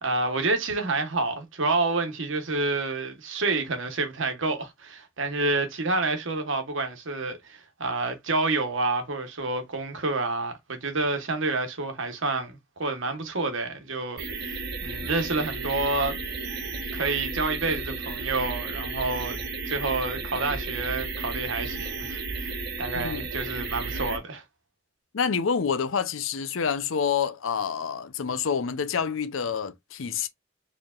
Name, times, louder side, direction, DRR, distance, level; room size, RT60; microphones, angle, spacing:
voice 1, 0.0-16.2 16.9-19.4 19.6-22.5 22.8-24.4, right 3 dB, 75° right, 1.1 m, -28 dB
sound 1, 14.2-24.2, right 3 dB, 55° right, 0.9 m, -33 dB
voice 2, 22.9-23.3 25.1-30.3, left 6 dB, 85° left, 0.6 m, -27 dB
4.5 x 3.3 x 2.4 m
head